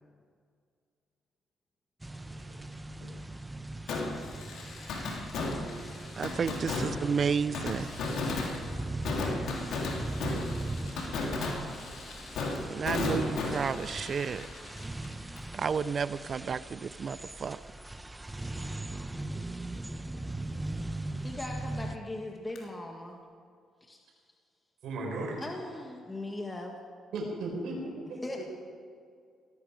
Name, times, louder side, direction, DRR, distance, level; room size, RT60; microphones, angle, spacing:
sound 1, 2.0-22.0, right 2 dB, 10° right, 0.8 m, -40 dB
Fireworks, 3.9-15.6 15.8-15.9 22.6-22.7, left 3 dB, 80° left, 3.0 m, -35 dB
voice 1, 6.2-7.8 12.7-14.4 15.5-17.6, right 6 dB, 45° right, 17 dB, 0.5 m, -31 dB
voice 2, 11.6-12.5 21.2-23.2 23.8-24.0 25.4-26.8 28.2-28.4, left 2 dB, 20° left, 1 dB, 1.8 m, -40 dB
voice 3, 24.8-25.4 27.1-28.2, right 2 dB, 80° right, -1 dB, 5.0 m, -35 dB
18.0 x 14.5 x 5.1 m, 2.1 s
cardioid pair, 90°, 0 cm